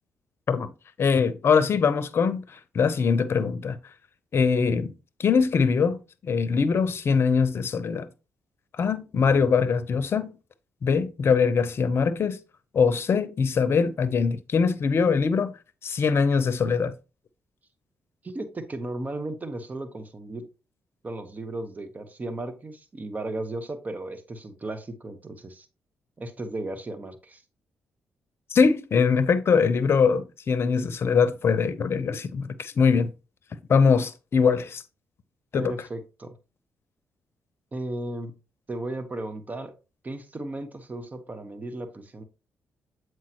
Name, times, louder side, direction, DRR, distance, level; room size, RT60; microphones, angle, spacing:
voice 1, 1.0-3.8 4.3-4.9 5.2-8.1 8.8-10.4 10.8-12.4 12.7-15.6 15.8-16.9 28.5-33.1 33.7-34.8 35.5-35.7, left 5 dB, 55° left, 0.7 m, -22 dB
voice 2, 18.2-20.4 21.0-25.7 26.2-27.4 35.5-36.3 37.7-38.3 38.7-39.7 40.0-42.2, right 2 dB, 35° right, 1.2 m, -35 dB
7.4 x 4.7 x 2.9 m
supercardioid pair, 50°, 5 cm